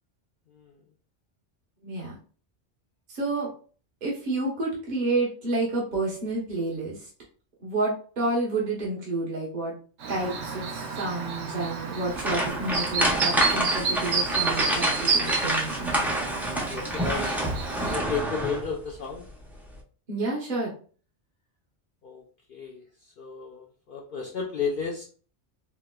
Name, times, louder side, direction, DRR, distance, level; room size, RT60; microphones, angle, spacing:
voice 1, 1.8-2.2 3.1-3.5 4.0-7.1 7.6-9.7 10.1-16.0 20.1-20.7, right 2 dB, 45° right, -5 dB, 1.1 m, -30 dB
Chirp tweet, 10.0-18.0, right 5 dB, 75° right, 1.0 m, -30 dB
sound 1, 12.1-18.8 19.1-19.3 19.7-19.8, right 1 dB, 5° right, 0.3 m, -28 dB
voice 2, 16.7-17.5 17.8-19.3 22.0-22.2 22.5-22.8 23.2-25.2, left 5 dB, 60° left, -1 dB, 0.6 m, -32 dB
4.4 x 2.0 x 2.2 m, 0.40 s
omnidirectional pair, 1.2 m